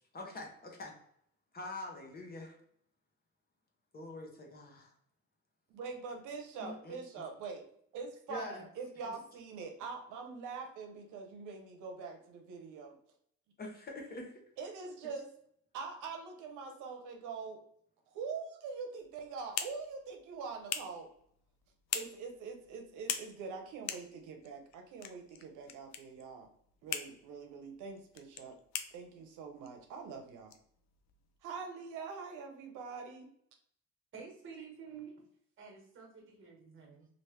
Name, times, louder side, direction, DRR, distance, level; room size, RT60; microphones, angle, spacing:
voice 1, 0.1-0.9 1.5-2.5 3.9-4.9 6.6-7.0 8.3-8.6 9.0-9.1 13.6-14.3, left 2 dB, 30° left, 1 dB, 0.8 m, -44 dB
voice 2, 5.7-7.6 7.9-13.0 14.6-15.3 15.7-17.6 18.1-21.1 21.9-26.5 26.8-28.6 28.9-30.5 31.4-33.3, right 5 dB, 85° right, 4 dB, 0.7 m, -44 dB
sound 1, 19.0-31.4, left 8 dB, 65° left, 0.5 m, -45 dB
voice 3, 34.1-35.1 35.6-37.1, right 6 dB, 40° right, 1 dB, 1.2 m, -50 dB
3.0 x 2.5 x 3.2 m, 0.68 s
cardioid pair, 115°, 30 cm